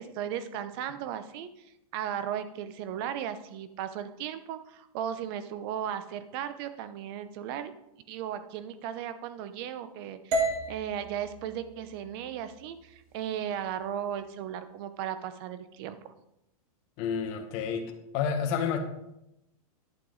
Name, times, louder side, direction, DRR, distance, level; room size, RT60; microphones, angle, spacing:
voice 1, 0.0-1.5 1.9-7.7 8.1-16.1, right 9 dB, 40° right, 12 dB, 0.8 m, -36 dB
sound 1, 10.3-14.4, right 2 dB, 70° right, 2.1 m, -35 dB
voice 2, 17.0-17.9 18.1-18.8, left 7 dB, 35° left, 5 dB, 1.4 m, -29 dB
11.5 x 6.8 x 4.0 m, 0.86 s
supercardioid pair, 150°, 19 cm